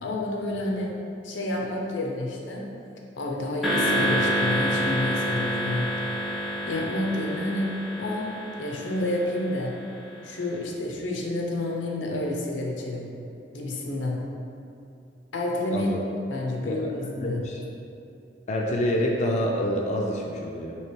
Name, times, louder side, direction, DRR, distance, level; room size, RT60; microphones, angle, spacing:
voice 1, 0.0-0.9 1.2-2.7 3.2-5.9 6.7-8.3 8.6-9.7 10.2-13.1 13.5-14.2 15.3-15.9 16.3-17.4, left 1 dB, 90° left, -1 dB, 0.6 m, -29 dB
sound 1, 3.6-10.0, equal, ahead, 0.6 m, -28 dB
voice 2, 17.2-17.6 18.5-20.7, equal, 40° left, -1 dB, 0.4 m, -27 dB
3.2 x 2.9 x 4.5 m, 2.6 s
head